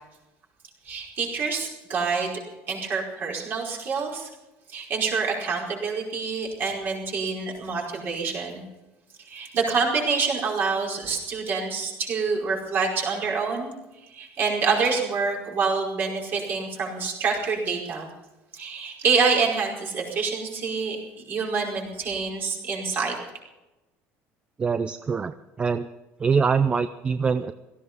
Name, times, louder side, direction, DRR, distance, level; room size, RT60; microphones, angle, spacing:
voice 1, 0.8-2.3 2.7-4.3 4.7-8.6 9.2-13.7 14.1-18.0 18.5-21.0 21.3-23.1, right 5 dB, 40° right, -1 dB, 5.1 m, -26 dB
voice 2, 24.6-25.9 26.2-27.5, right 5 dB, 20° right, 11 dB, 0.5 m, -24 dB
17.0 x 15.0 x 5.4 m, 1.0 s
cardioid pair, 160°, 5 cm